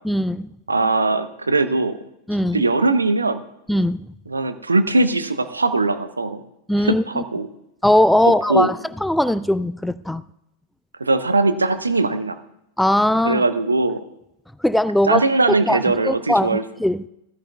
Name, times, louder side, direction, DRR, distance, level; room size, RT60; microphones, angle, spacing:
voice 1, 0.0-0.5 2.3-2.6 3.7-4.1 6.7-7.2 7.8-10.2 12.8-13.4 14.6-15.2 15.7-17.1, left 1 dB, 5° left, 0.3 m, -19 dB
voice 2, 0.7-2.0 2.5-3.4 4.3-6.4 6.8-7.5 8.3-8.7 11.0-12.4 13.2-14.0 15.1-16.6, right 3 dB, 80° right, 0.7 m, -20 dB
15.5 x 13.5 x 2.3 m
figure-of-eight pair, 90°, 0 cm